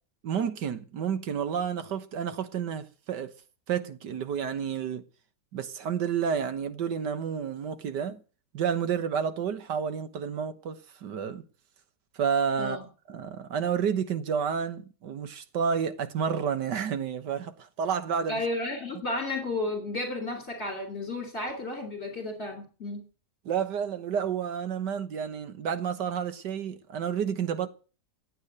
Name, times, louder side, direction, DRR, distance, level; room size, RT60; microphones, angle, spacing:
voice 1, 0.2-3.3 3.7-5.0 5.5-8.2 8.5-11.4 12.2-12.8 13.1-18.4 23.5-27.7, right 7 dB, 85° right, 1.8 m, -30 dB
voice 2, 18.3-23.1, left 2 dB, 40° left, 3.2 m, -33 dB
15.5 x 9.0 x 7.9 m
omnidirectional pair, 1.8 m